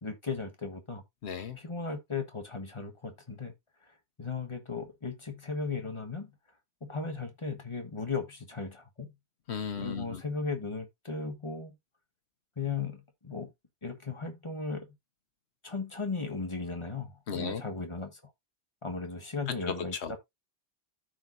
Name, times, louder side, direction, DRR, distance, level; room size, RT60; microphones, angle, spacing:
voice 1, 0.0-1.0 1.6-3.5 4.2-6.3 6.8-9.1 9.8-11.7 12.6-13.5 13.8-14.9 15.6-18.2 18.8-20.2, left 4 dB, 30° left, 1.3 m, -36 dB
voice 2, 1.2-1.6 9.5-10.2 17.3-17.6 19.7-20.1, left 6 dB, 85° left, 1.3 m, -35 dB
13.5 x 4.7 x 2.5 m
omnidirectional pair, 1.1 m